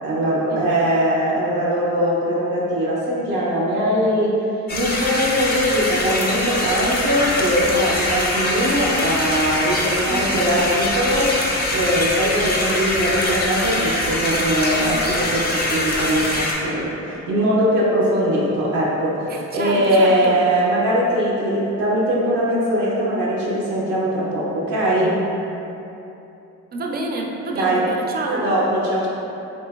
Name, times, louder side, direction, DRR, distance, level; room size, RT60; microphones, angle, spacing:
voice 1, 0.0-11.4 11.7-25.3 27.5-27.9 28.3-29.1, equal, 85° right, -5 dB, 0.6 m, -21 dB
sound 1, 4.7-16.5, left 1 dB, 35° left, 0.5 m, -23 dB
voice 2, 10.1-10.4 19.3-20.4 26.7-28.4, right 2 dB, 35° right, 1 dB, 0.4 m, -28 dB
3.0 x 2.7 x 2.2 m, 2.9 s
cardioid pair, 90°, 30 cm